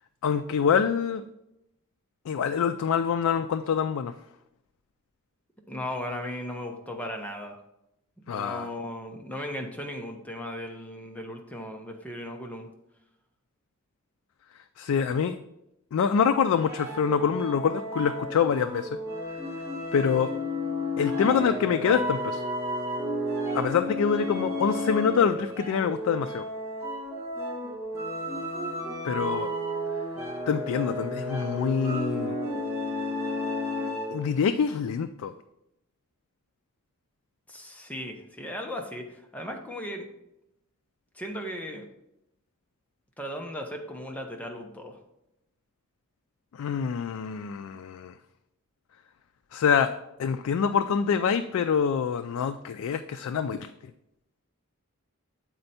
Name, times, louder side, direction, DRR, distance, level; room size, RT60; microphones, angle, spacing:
voice 1, 0.2-1.2 2.3-4.1 8.3-8.7 14.8-15.4 15.9-18.9 19.9-20.3 21.0-22.4 23.5-26.4 29.0-29.5 30.5-32.4 34.1-35.3 46.6-48.1 49.5-53.7, left 7 dB, 70° left, 8 dB, 0.3 m, -25 dB
voice 2, 5.7-7.6 8.2-12.7 37.5-40.1 41.1-41.9 43.2-45.0, left 1 dB, 5° left, 2 dB, 0.7 m, -37 dB
sound 1, 16.6-34.3, left 1 dB, 10° right, 1.2 m, -32 dB
7.9 x 4.4 x 4.1 m, 0.85 s
head